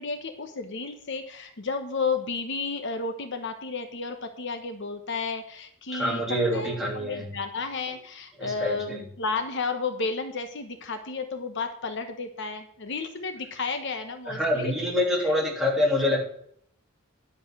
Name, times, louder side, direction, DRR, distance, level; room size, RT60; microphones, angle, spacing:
voice 1, 0.0-6.2 6.5-14.7, left 4 dB, 55° left, 7 dB, 1.1 m, -32 dB
voice 2, 5.9-7.3 8.4-9.0 14.2-16.2, left 1 dB, ahead, -4 dB, 3.3 m, -26 dB
10.5 x 7.3 x 6.1 m, 0.64 s
head